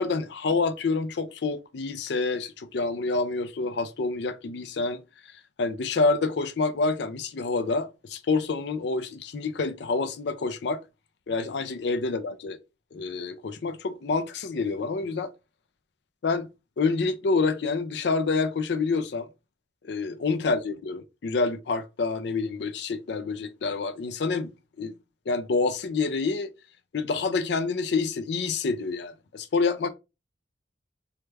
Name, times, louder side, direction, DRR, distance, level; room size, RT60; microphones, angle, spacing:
voice 1, 0.0-5.0 5.6-10.8 11.3-12.6 12.9-15.3 16.2-16.5 16.8-19.3 19.8-24.5 24.8-24.9 25.3-26.5 26.9-29.9, left 4 dB, 65° left, 0.4 m, -27 dB
3.3 x 2.3 x 3.1 m
head